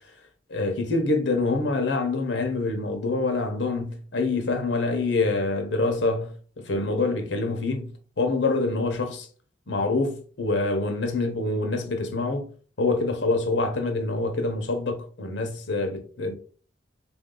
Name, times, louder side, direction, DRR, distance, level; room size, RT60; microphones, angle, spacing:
voice 1, 0.5-9.3 9.7-12.5 12.8-16.4, left 3 dB, 80° left, 0.8 m, -26 dB
3.6 x 2.6 x 3.7 m
head